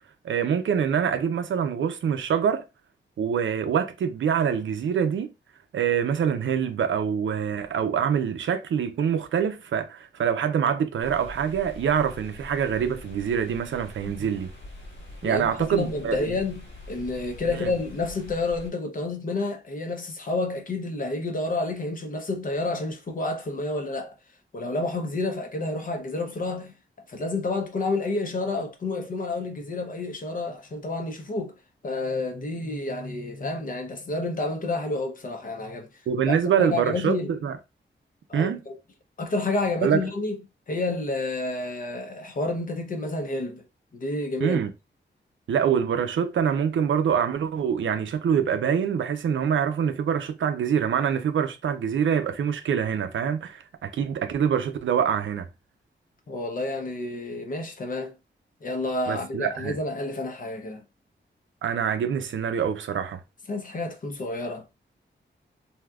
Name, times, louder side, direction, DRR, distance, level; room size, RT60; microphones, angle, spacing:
voice 1, 0.2-2.6 3.2-5.3 5.7-14.5 15.2-16.4 17.5-17.7 36.1-37.6 38.3-38.6 39.8-40.0 44.4-44.7 45.5-55.5 59.1-59.8 61.6-63.2, right 8 dB, 80° right, 0.5 m, -25 dB
sound 1, 11.0-18.7, left 1 dB, 70° left, 1.6 m, -44 dB
voice 2, 15.2-24.1 24.5-26.7 27.1-31.5 31.8-35.9 36.3-37.4 38.3-38.8 39.2-40.4 40.7-43.6 43.9-44.6 56.3-58.1 58.6-60.8 63.5-64.6, left 2 dB, 45° left, 0.6 m, -29 dB
3.4 x 2.7 x 2.3 m
wide cardioid pair, 170°, 20 cm